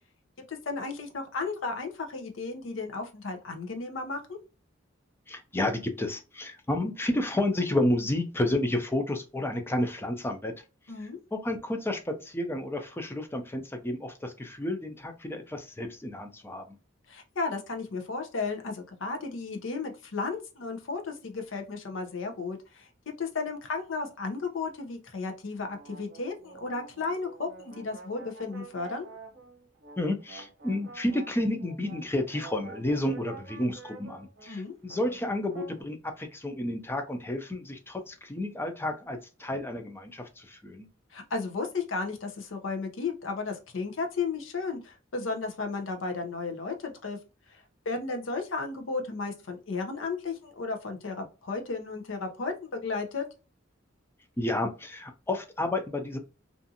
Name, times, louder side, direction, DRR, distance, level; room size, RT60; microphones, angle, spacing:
voice 1, 0.5-4.4 10.9-11.2 17.1-22.9 23.2-29.1 34.5-34.7 41.1-47.2 47.5-53.2, left 4 dB, 75° left, 5 dB, 0.6 m, -34 dB
voice 2, 5.3-10.5 11.3-16.8 30.0-40.9 54.4-56.2, left 1 dB, 10° left, 6 dB, 0.4 m, -31 dB
sound 1, 25.7-35.8, right 4 dB, 60° right, 0.8 m, -48 dB
2.5 x 2.4 x 2.6 m, 0.32 s
head